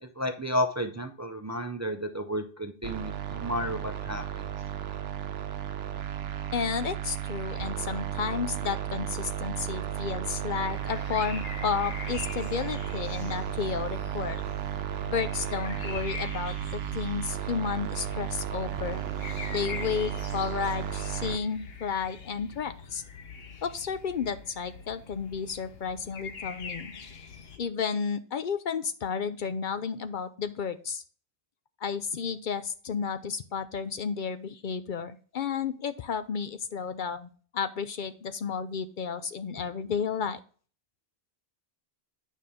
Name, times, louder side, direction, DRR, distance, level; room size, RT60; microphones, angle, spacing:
voice 1, 0.0-4.5, equal, 25° right, 7 dB, 0.4 m, -32 dB
sound 1, 2.8-21.4, right 10 dB, 85° right, 0.9 m, -34 dB
voice 2, 6.5-14.4 15.1-19.0 19.5-23.0 23.6-26.9 27.6-31.0 31.8-40.4, left 6 dB, 60° left, 11 dB, 0.7 m, -32 dB
sound 2, 10.7-27.6, left 5 dB, 75° left, 1.2 m, -44 dB
9.2 x 5.4 x 3.5 m, 0.41 s
omnidirectional pair, 1.0 m